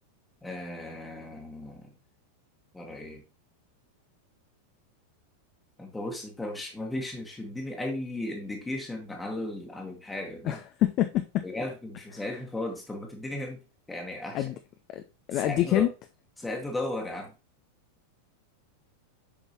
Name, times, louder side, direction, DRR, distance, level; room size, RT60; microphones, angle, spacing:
voice 1, 0.4-1.8 2.7-3.2 5.8-10.6 11.4-13.6 13.9-14.5 15.3-15.9 16.4-17.3, left 1 dB, 10° left, 1 dB, 1.4 m, -35 dB
voice 2, 10.5-11.4 14.3-14.5 14.9-15.0 15.3-15.9, left 13 dB, 35° left, 8 dB, 0.5 m, -26 dB
7.0 x 5.3 x 2.9 m, 0.29 s
figure-of-eight pair, 90°, 0 cm